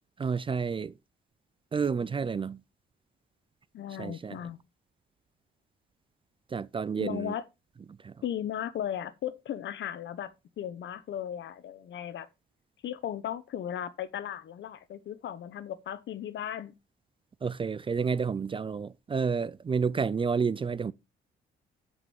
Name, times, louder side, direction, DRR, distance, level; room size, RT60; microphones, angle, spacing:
voice 1, 0.2-0.9 1.7-2.6 4.0-4.4 6.5-7.3 8.0-8.1 17.4-20.9, right 5 dB, 25° right, 0.4 m, -30 dB
voice 2, 3.7-4.6 7.0-7.4 8.2-12.3 12.8-16.7, left 10 dB, 70° left, 1.2 m, -36 dB
8.2 x 5.4 x 5.4 m
cardioid pair, 90°, 20 cm